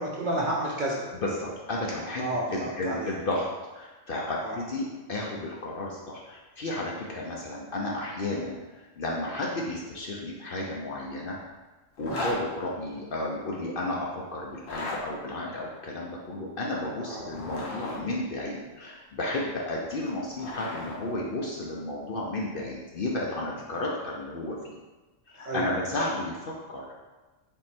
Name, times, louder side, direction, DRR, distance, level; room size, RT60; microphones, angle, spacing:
voice 1, 0.0-1.1 2.2-3.1 4.4-4.6 12.1-12.2 17.0-17.3 25.4-25.7, right 1 dB, 50° right, -4 dB, 0.6 m, -31 dB
voice 2, 1.1-2.2 2.5-3.5 3.7-8.6 9.0-11.4 12.0-24.8 25.3-26.8, left 2 dB, 55° left, -3 dB, 0.6 m, -32 dB
Zipper (clothing), 12.0-12.4 14.5-15.0 17.1-18.0 19.9-21.0, left 2 dB, 80° left, 1.2 m, -35 dB
3.6 x 3.0 x 4.3 m, 1.2 s
omnidirectional pair, 1.3 m